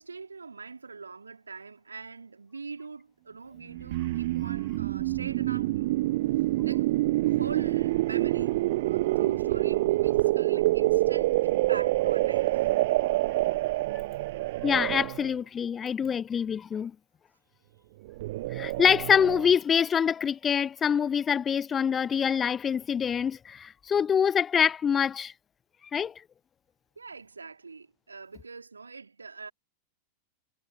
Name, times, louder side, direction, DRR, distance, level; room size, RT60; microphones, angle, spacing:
voice 1, 0.0-6.0 6.6-6.9 7.3-12.7 27.0-29.5, right 4 dB, 75° right, 3.8 m, -43 dB
sound 1, 3.7-15.3 18.1-19.5, right 18 dB, 50° right, 0.4 m, -26 dB
voice 2, 14.6-16.9 18.5-25.3 25.9-26.1, left 7 dB, 20° left, 0.6 m, -25 dB
figure-of-eight pair, 90°, 0 cm